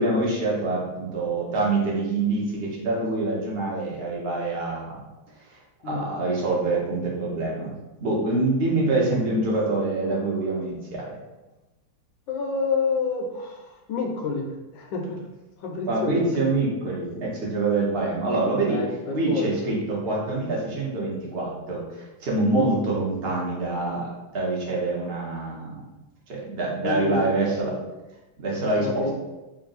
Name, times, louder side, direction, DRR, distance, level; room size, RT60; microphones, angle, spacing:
voice 1, 0.0-5.0 5.8-7.7 8.0-11.0 15.9-18.8 19.1-25.8 26.4-27.8 28.4-29.1, right 2 dB, 45° right, -4 dB, 0.7 m, -25 dB
voice 2, 12.3-15.2 15.6-16.2 18.7-19.7 22.5-22.8 26.8-27.4 28.6-29.1, left 4 dB, 75° left, 2 dB, 1.3 m, -29 dB
3.4 x 2.6 x 3.9 m, 1.1 s
omnidirectional pair, 2.3 m